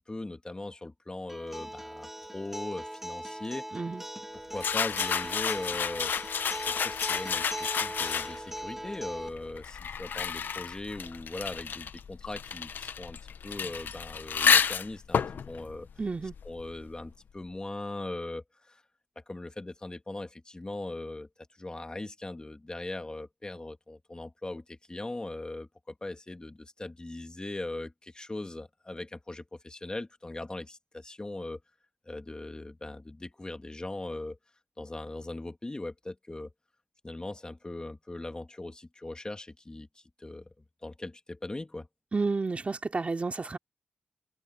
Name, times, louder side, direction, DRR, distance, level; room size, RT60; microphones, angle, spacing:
voice 1, 0.0-3.7 4.3-6.2 6.5-15.9 16.5-18.8 19.2-21.3 21.6-31.6 32.1-34.4 34.8-36.5 37.0-41.9, left 2 dB, 25° left, 2.2 m, -40 dB
Acoustic guitar, 1.3-9.3, right 1 dB, 10° right, 1.4 m, -40 dB
voice 2, 3.7-4.0 16.0-16.4 42.1-43.6, right 3 dB, 40° right, 2.7 m, -31 dB
sound 1, 4.6-8.6 9.3-16.8, left 7 dB, 80° left, 0.6 m, -30 dB
cardioid pair, 60°, 3 cm